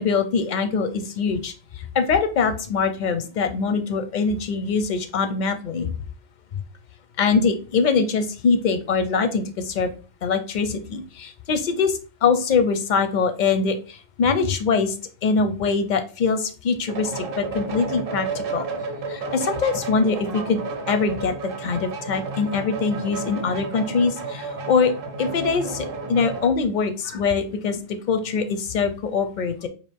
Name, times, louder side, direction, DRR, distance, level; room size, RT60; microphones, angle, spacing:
voice 1, 0.0-5.9 7.2-9.9 10.2-15.0 15.2-18.7 19.1-20.6 20.9-24.9 25.2-29.7, left 5 dB, 55° left, 9 dB, 0.5 m, -23 dB
sound 1, 16.9-26.5, right 3 dB, 60° right, 0.8 m, -32 dB
4.6 x 2.4 x 3.3 m, 0.36 s
omnidirectional pair, 1.2 m